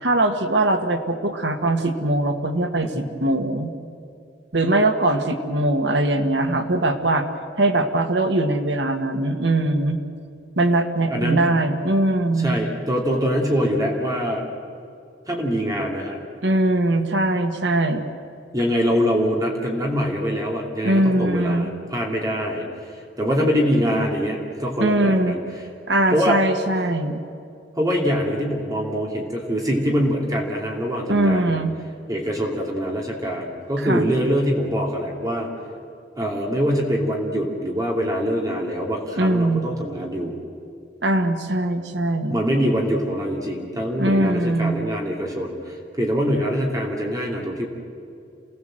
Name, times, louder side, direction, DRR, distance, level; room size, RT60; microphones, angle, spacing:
voice 1, 0.0-3.7 4.5-7.3 7.6-10.0 10.6-12.6 16.4-18.0 20.8-21.7 24.8-25.4 25.9-27.2 31.1-31.7 33.8-34.1 39.2-39.7 41.0-42.4 44.0-44.7, right 1 dB, 75° right, 6 dB, 1.6 m, -21 dB
voice 2, 11.1-11.5 12.3-14.4 15.2-16.2 18.5-22.7 22.9-25.4 26.1-26.4 27.8-31.5 32.1-35.5 36.2-40.3 42.3-47.6, equal, 20° right, -1 dB, 2.7 m, -24 dB
28.0 x 18.0 x 7.7 m, 2.5 s
head